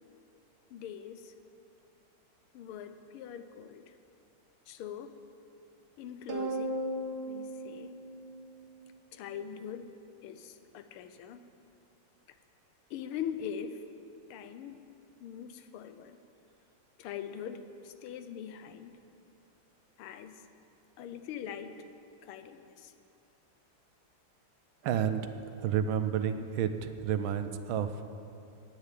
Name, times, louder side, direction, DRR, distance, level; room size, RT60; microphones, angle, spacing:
voice 1, 0.7-1.3 2.5-3.9 4.7-5.2 6.0-6.9 7.3-7.9 9.1-9.9 10.2-11.4 12.9-13.8 14.3-14.8 15.2-16.2 17.0-19.0 20.0-20.4 21.0-21.8 22.2-22.9, left 8 dB, 85° left, 10 dB, 1.6 m, -42 dB
sound 1, 6.3-8.9, right 1 dB, 50° right, 1.6 m, -36 dB
voice 2, 24.8-25.3 25.6-28.1, right 8 dB, 75° right, 9 dB, 1.4 m, -30 dB
10.0 x 9.3 x 9.0 m, 2.7 s
omnidirectional pair, 2.3 m